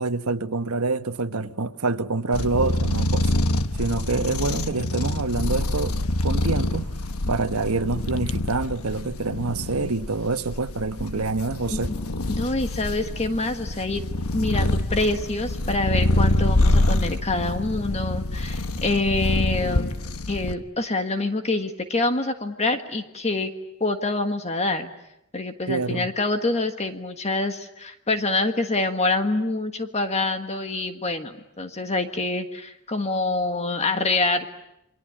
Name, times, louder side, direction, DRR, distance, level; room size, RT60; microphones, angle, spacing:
voice 1, 0.0-3.3 3.7-6.9 7.3-11.9 25.7-26.1, right 3 dB, 80° right, 1.1 m, -26 dB
sound 1, 2.3-20.5, left 1 dB, 70° left, 1.3 m, -26 dB
voice 2, 12.3-14.0 14.3-20.0 20.3-23.5 23.8-24.9 25.3-34.5, left 2 dB, 30° left, 1.6 m, -26 dB
29.0 x 23.5 x 8.7 m
head